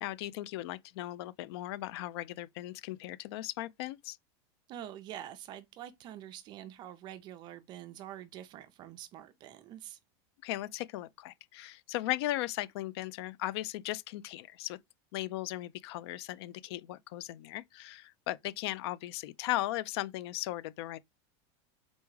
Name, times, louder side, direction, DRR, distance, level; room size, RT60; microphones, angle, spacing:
voice 1, 0.0-4.2 10.4-14.8 15.1-21.0, left 16 dB, 65° left, 0.4 m, -37 dB
voice 2, 4.7-10.0, right 11 dB, 30° right, 0.4 m, -46 dB
4.0 x 3.4 x 3.1 m
supercardioid pair, 160°, 14 cm